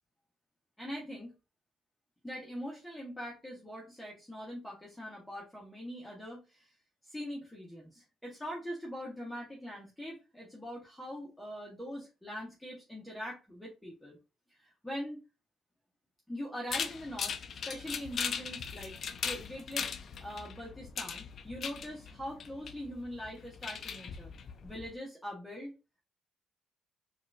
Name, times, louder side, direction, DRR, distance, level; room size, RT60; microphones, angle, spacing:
voice 1, 0.8-1.3 2.2-6.7 7.0-14.2 14.6-15.2 16.3-17.4 17.7-18.9 19.2-19.9 20.2-24.3 24.6-25.7, equal, 5° left, -4 dB, 1.1 m, -42 dB
sound 1, 16.7-24.9, left 6 dB, 55° left, 0.4 m, -39 dB
4.2 x 2.5 x 2.4 m, 0.29 s
cardioid pair, 90°, 0 cm